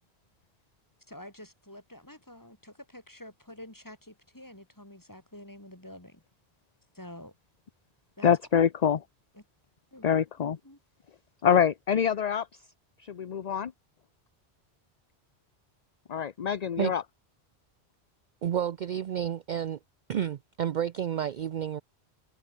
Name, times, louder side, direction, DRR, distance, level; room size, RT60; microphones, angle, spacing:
voice 1, 1.1-6.2 6.9-7.3 8.2-8.7 9.3-9.4 9.9-10.1 10.4-10.8, left 1 dB, 15° left, 3.5 m, -48 dB
voice 2, 8.2-9.0 10.0-10.6 11.4-12.5 13.0-13.7 16.1-17.0, left 8 dB, 45° left, 0.7 m, -25 dB
voice 3, 18.4-19.8 20.1-21.8, right 9 dB, 55° right, 0.6 m, -30 dB
omnidirectional pair, 1.1 m